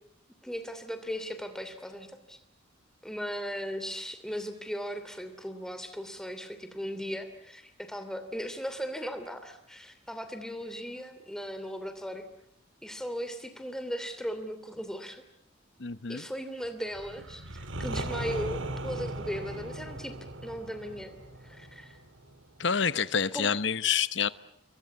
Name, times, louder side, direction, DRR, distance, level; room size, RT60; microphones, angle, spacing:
voice 1, 0.4-2.4 3.0-12.3 12.8-15.2 16.1-20.1 20.4-21.1 21.4-22.0 23.3-23.5, equal, 5° left, 9 dB, 2.8 m, -37 dB
voice 2, 15.8-16.2 22.6-24.3, left 7 dB, 65° left, 15 dB, 1.0 m, -27 dB
sound 1, 16.9-22.7, right 1 dB, 75° right, 1.9 m, -38 dB
28.0 x 23.0 x 8.5 m, 0.73 s
head